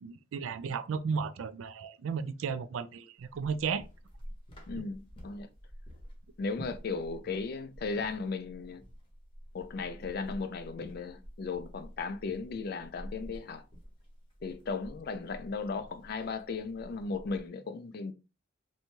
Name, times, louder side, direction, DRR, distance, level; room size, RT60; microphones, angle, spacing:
voice 1, 0.0-3.8 4.7-4.8, right 5 dB, 75° right, 0.3 m, -34 dB
sound 1, 3.2-17.5, equal, 25° left, 0.8 m, -49 dB
voice 2, 4.7-5.5 6.4-8.8 9.5-13.6 14.4-18.1, left 4 dB, 50° left, 0.3 m, -36 dB
2.6 x 2.2 x 2.9 m
head